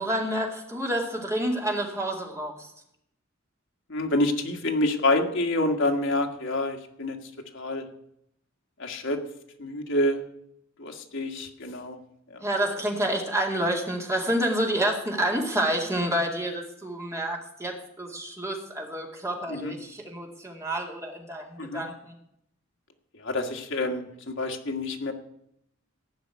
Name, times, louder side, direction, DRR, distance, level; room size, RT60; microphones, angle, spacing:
voice 1, 0.0-2.7 12.4-22.1, right 1 dB, 15° right, 0 dB, 2.3 m, -29 dB
voice 2, 3.9-7.8 8.8-9.2 9.6-10.2 10.8-12.0 12.3-12.4 19.5-19.7 21.6-21.8 23.1-25.1, left 2 dB, 60° left, 3 dB, 1.7 m, -27 dB
15.5 x 6.0 x 9.3 m, 0.76 s
head